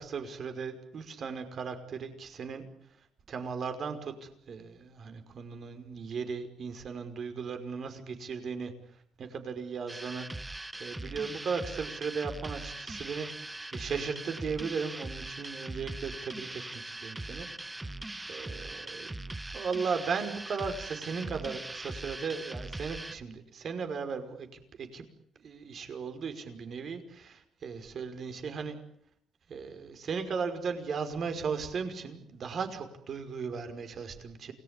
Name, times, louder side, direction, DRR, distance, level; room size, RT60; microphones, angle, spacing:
voice 1, 0.0-2.6 3.3-8.7 9.2-17.9 18.3-19.2 19.5-25.0 25.4-28.8 29.5-34.5, right 5 dB, 55° right, 8 dB, 5.5 m, -37 dB
sound 1, 9.9-23.1, right 2 dB, 15° right, 1.3 m, -41 dB
28.5 x 20.0 x 9.9 m, 0.69 s
cardioid pair, 90°, 0 cm